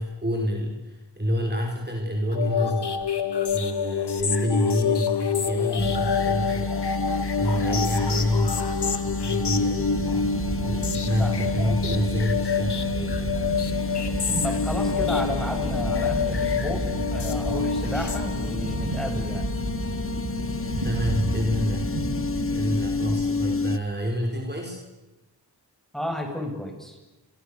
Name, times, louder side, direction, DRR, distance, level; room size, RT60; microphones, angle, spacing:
voice 1, 0.0-3.0 3.5-6.8 7.1-10.3 10.6-13.3 20.7-22.0 22.5-24.8, equal, 25° right, 1 dB, 5.2 m, -28 dB
sound 1, 2.3-18.7, left 6 dB, 70° left, 1.9 m, -27 dB
sound 2, 5.8-23.8, left 3 dB, 30° left, 1.3 m, -30 dB
voice 2, 7.5-7.9 11.2-11.8 14.4-19.5 25.9-27.0, equal, ahead, 3 dB, 7.2 m, -33 dB
sound 3, 9.8-23.2, right 2 dB, 90° right, 4.4 m, -32 dB
30.0 x 23.5 x 7.0 m, 1.0 s
wide cardioid pair, 50°, 42 cm